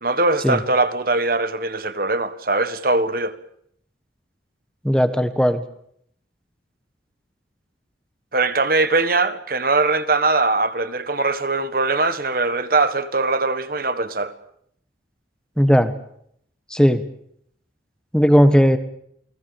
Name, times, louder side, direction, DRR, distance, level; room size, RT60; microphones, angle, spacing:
voice 1, 0.0-3.3 8.3-14.3, right 3 dB, 50° right, 1.6 m, -21 dB
voice 2, 4.8-5.6 15.6-15.9 16.7-17.0 18.1-18.8, equal, 5° left, 1.5 m, -16 dB
29.0 x 20.5 x 7.2 m
head